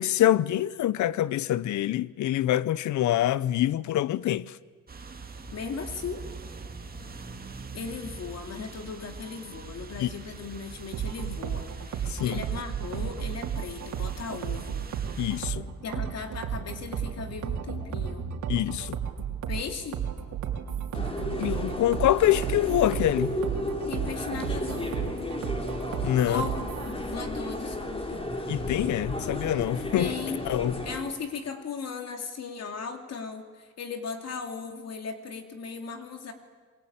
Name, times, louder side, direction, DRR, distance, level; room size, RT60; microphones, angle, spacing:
voice 1, 0.0-4.6 10.0-10.1 12.1-12.4 15.2-15.7 18.5-19.0 20.9-21.0 21.4-23.3 26.0-26.4 28.5-30.1 30.4-30.8, left 13 dB, 75° left, 0.8 m, -25 dB
sound 1, 4.9-15.4, right 4 dB, 30° right, 2.4 m, -43 dB
voice 2, 5.5-6.2 7.7-14.9 15.8-18.3 19.5-20.0 23.9-25.0 26.2-28.2 29.9-30.4 30.8-36.3, left 5 dB, 55° left, 2.7 m, -37 dB
sound 2, 10.9-26.9, right 8 dB, 75° right, 3.2 m, -33 dB
sound 3, 20.9-31.0, left 1 dB, 20° left, 3.9 m, -33 dB
27.0 x 22.5 x 8.7 m
cardioid pair, 90°, 30 cm